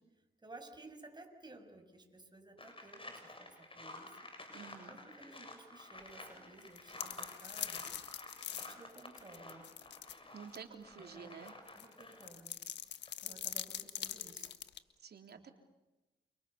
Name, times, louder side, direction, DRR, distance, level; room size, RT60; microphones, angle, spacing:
voice 1, 0.4-4.2 4.9-7.9 8.5-9.7 11.0-11.3 11.8-12.6 13.2-14.5 15.3-15.5, right 2 dB, 25° right, 5 dB, 7.0 m, -56 dB
sound 1, 2.6-12.5 12.9-13.1, left 2 dB, 30° left, 7.4 m, -51 dB
voice 2, 4.5-5.0 10.3-11.6 15.0-15.5, right 6 dB, 70° right, 5 dB, 3.7 m, -50 dB
sound 2, 6.6-10.2 10.6-10.7 11.5-14.8, left 10 dB, 85° left, 1.5 m, -43 dB
29.5 x 28.5 x 7.1 m, 1.1 s
cardioid pair, 60°, 18 cm